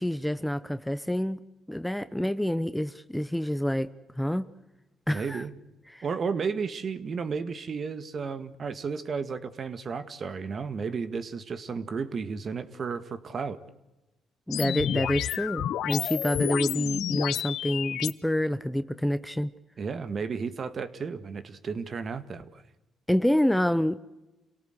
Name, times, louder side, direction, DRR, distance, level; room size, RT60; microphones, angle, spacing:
voice 1, 0.0-1.4 1.7-4.5 5.1-5.4 5.9-6.0 14.5-19.5 23.1-24.0, equal, 5° left, 0.8 m, -27 dB
voice 2, 5.1-5.5 6.0-13.6 19.8-22.6, right 5 dB, 45° right, 1.8 m, -33 dB
sound 1, 14.5-18.1, left 11 dB, 80° left, 0.9 m, -30 dB
28.0 x 18.0 x 8.0 m
cardioid pair, 90°, 0 cm